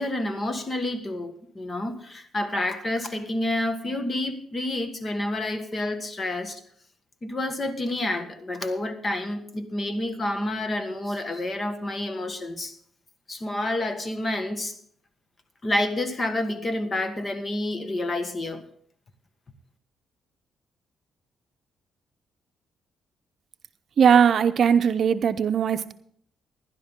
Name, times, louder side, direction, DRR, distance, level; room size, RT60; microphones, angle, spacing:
voice 1, 0.0-6.6 7.2-12.8 13.3-14.8 15.6-18.6, left 1 dB, 30° left, 1.6 m, -29 dB
voice 2, 24.0-25.9, right 7 dB, 55° right, 0.7 m, -19 dB
16.0 x 11.5 x 3.7 m
cardioid pair, 90°, 0 cm